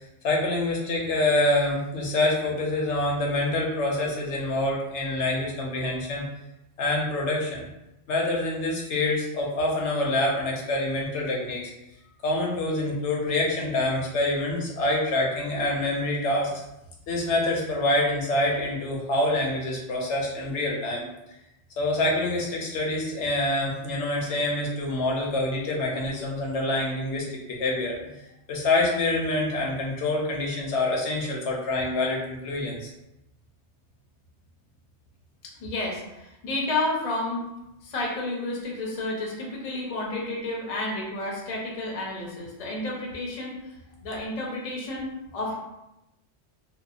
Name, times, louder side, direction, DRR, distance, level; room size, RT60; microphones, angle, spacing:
voice 1, 0.2-6.2 6.8-7.7 8.1-11.6 12.2-16.5 17.1-21.1 21.8-28.1 28.5-32.9, left 2 dB, 80° left, -1 dB, 0.9 m, -26 dB
voice 2, 35.6-37.4 37.8-43.6 44.0-45.6, left 2 dB, 40° left, -3 dB, 0.5 m, -31 dB
2.7 x 2.1 x 2.4 m, 0.91 s
omnidirectional pair, 1.2 m